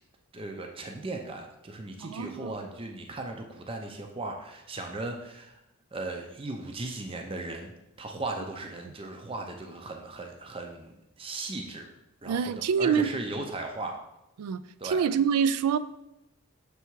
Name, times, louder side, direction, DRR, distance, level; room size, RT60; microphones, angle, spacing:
voice 1, 0.3-5.6 5.9-7.7 8.0-10.9 11.2-11.9 12.2-14.0 14.8-15.0, right 2 dB, 25° right, 3 dB, 0.5 m, -37 dB
voice 2, 2.0-2.6 12.3-13.1 14.4-15.8, right 7 dB, 85° right, 15 dB, 0.3 m, -26 dB
6.9 x 3.4 x 4.6 m, 0.88 s
head